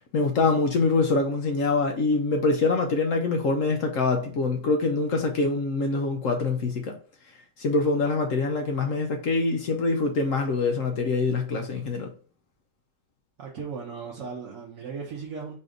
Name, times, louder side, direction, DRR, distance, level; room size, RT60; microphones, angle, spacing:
voice 1, 0.1-6.9 7.6-12.1, left 3 dB, 60° left, 0.9 m, -24 dB
voice 2, 13.4-15.5, right 5 dB, 55° right, 1.1 m, -36 dB
4.2 x 2.6 x 4.8 m
omnidirectional pair, 1.9 m